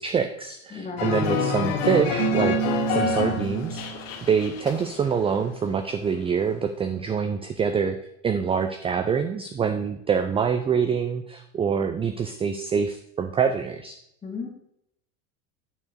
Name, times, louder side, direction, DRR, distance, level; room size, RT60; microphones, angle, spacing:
voice 1, 0.0-3.8 4.2-8.0 8.2-14.0, right 6 dB, 15° right, 7 dB, 0.4 m, -25 dB
voice 2, 0.7-1.2 14.2-14.5, left 4 dB, 20° left, 1 dB, 1.9 m, -34 dB
sound 1, 1.0-5.4 5.7-6.1, left 6 dB, 65° left, 1.3 m, -27 dB
Keyboard (musical), 2.2-4.2, right 17 dB, 75° right, 1.0 m, -29 dB
8.8 x 4.6 x 4.5 m, 0.76 s
supercardioid pair, 105°, 39 cm